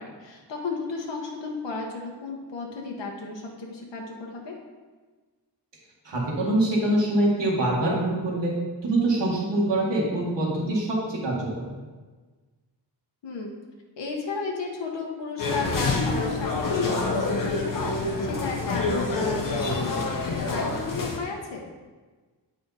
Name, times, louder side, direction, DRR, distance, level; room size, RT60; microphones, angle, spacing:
voice 1, 0.0-4.6 13.2-13.5 14.0-21.7, left 4 dB, 85° left, -1 dB, 1.2 m, -34 dB
voice 2, 6.0-8.5 8.8-11.7, right 1 dB, 80° right, -3 dB, 2.0 m, -24 dB
sound 1, 15.4-21.2, left 3 dB, 50° left, 1.0 m, -27 dB
8.6 x 5.1 x 4.2 m, 1.3 s
wide cardioid pair, 180°, 43 cm